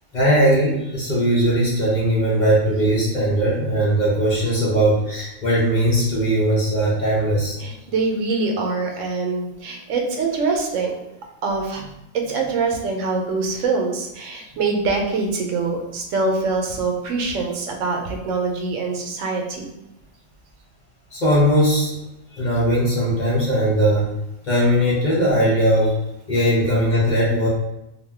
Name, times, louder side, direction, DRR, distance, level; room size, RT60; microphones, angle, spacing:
voice 1, 0.1-7.6 21.1-21.9 22.3-24.1 24.4-26.0 26.3-27.5, equal, 45° left, -5 dB, 0.6 m, -19 dB
voice 2, 7.6-10.9 11.4-11.8 12.1-19.7, right 3 dB, 80° right, 2 dB, 0.9 m, -24 dB
2.6 x 2.1 x 3.3 m, 0.93 s
omnidirectional pair, 1.3 m